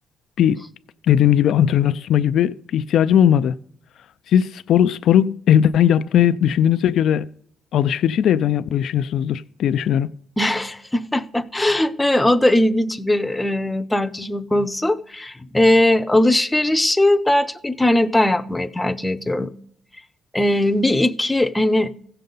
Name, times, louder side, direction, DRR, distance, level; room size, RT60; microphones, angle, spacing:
voice 1, 1.1-3.5 4.3-7.3 7.7-10.1, left 10 dB, 70° left, 0.3 m, -18 dB
voice 2, 10.4-19.5 20.3-21.9, left 1 dB, 10° left, 0.6 m, -19 dB
15.5 x 6.6 x 3.9 m
cardioid pair, 90°, 0 cm